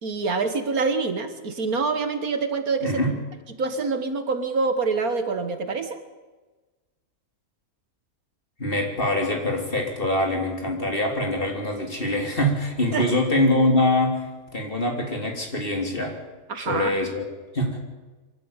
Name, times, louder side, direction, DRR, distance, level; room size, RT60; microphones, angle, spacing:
voice 1, 0.0-3.0 3.6-6.0 12.9-13.1 16.5-16.9, right 4 dB, 70° right, 8 dB, 2.1 m, -26 dB
voice 2, 2.8-3.1 8.6-14.2 14.5-16.2 16.7-17.3 17.5-17.8, left 1 dB, 35° left, 2 dB, 3.7 m, -24 dB
24.0 x 13.5 x 9.0 m, 1.3 s
omnidirectional pair, 1.6 m